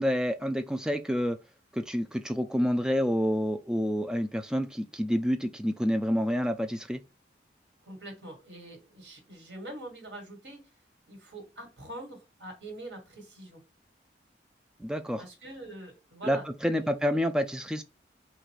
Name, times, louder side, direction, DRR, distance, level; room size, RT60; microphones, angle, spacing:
voice 1, 0.0-1.4 1.7-7.0 14.8-15.2 16.2-17.8, equal, 5° right, 0.3 m, -28 dB
voice 2, 7.8-10.7 11.1-13.6 15.2-17.0, right 1 dB, 75° right, 1.7 m, -44 dB
4.0 x 2.5 x 4.5 m
head